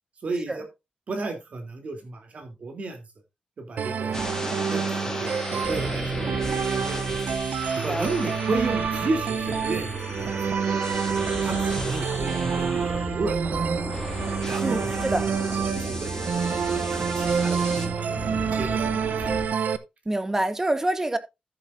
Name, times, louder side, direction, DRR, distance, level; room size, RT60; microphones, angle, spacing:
voice 1, 0.2-0.6 1.1-3.0 3.6-7.2 7.7-10.5 11.4-13.7 14.4-15.0 15.4-16.2 16.9-17.7 18.5-18.8 19.2-19.3, right 3 dB, 55° right, 3.1 m, -33 dB
voice 2, 3.8-4.7 7.9-8.1 14.6-15.2 20.0-21.2, right 1 dB, 15° right, 1.3 m, -27 dB
sound 1, 3.8-19.8, right 6 dB, 75° right, 0.8 m, -27 dB
sound 2, 4.1-19.5, left 2 dB, 20° left, 2.2 m, -35 dB
13.5 x 7.5 x 2.6 m
wide cardioid pair, 110°, 3 cm